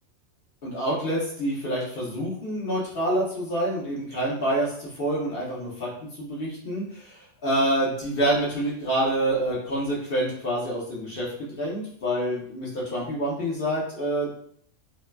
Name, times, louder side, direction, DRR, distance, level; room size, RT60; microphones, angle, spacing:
voice 1, 0.6-5.9 6.2-14.3, right 1 dB, 50° left, -6 dB, 0.8 m, -27 dB
3.2 x 2.1 x 2.2 m, 0.64 s
omnidirectional pair, 1.4 m